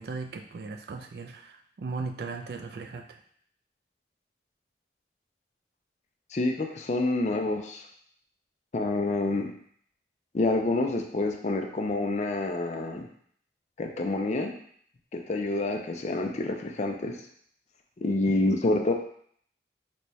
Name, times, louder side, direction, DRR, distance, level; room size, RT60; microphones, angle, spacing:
voice 1, 0.0-3.2, right 4 dB, 60° right, 5 dB, 0.4 m, -37 dB
voice 2, 6.3-7.8 8.7-9.5 10.3-13.1 13.8-14.5 15.1-17.2 18.0-18.9, left 2 dB, 40° left, 3 dB, 0.4 m, -27 dB
4.1 x 2.3 x 3.1 m, 0.63 s
head